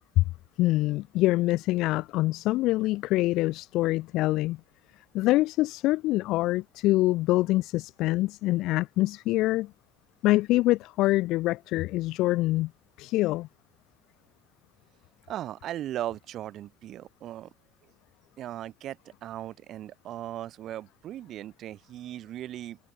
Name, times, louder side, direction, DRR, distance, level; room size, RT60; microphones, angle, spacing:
voice 1, 0.6-4.6 5.1-9.7 10.2-12.7 13.0-13.5, left 18 dB, 65° left, 4.6 m, -25 dB
voice 2, 15.3-17.5 18.4-22.8, right 12 dB, 50° right, 7.9 m, -38 dB
cardioid pair, 140°, 0 cm